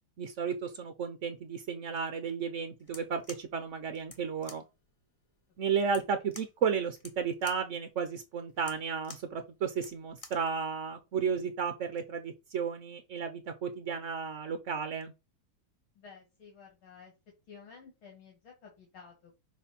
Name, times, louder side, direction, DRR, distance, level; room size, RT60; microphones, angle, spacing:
voice 1, 0.2-4.6 5.6-15.1, right 6 dB, 65° right, 0.7 m, -33 dB
pulling fan light switch, 2.8-10.5, left 3 dB, 40° left, 0.5 m, -52 dB
voice 2, 15.9-17.1 17.5-19.3, left 5 dB, 75° left, 2.9 m, -53 dB
6.2 x 3.7 x 5.8 m
omnidirectional pair, 2.3 m